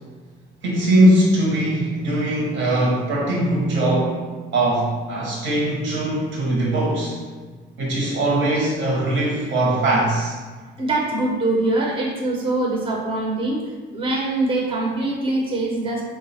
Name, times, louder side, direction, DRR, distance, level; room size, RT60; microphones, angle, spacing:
voice 1, 0.6-4.2 4.5-7.2 7.8-10.4, right 1 dB, 70° right, -4 dB, 1.0 m, -20 dB
voice 2, 10.8-13.6 13.9-16.0, right 2 dB, 30° right, -1 dB, 0.6 m, -23 dB
3.6 x 2.4 x 4.1 m, 1.4 s
cardioid pair, 90°, 20 cm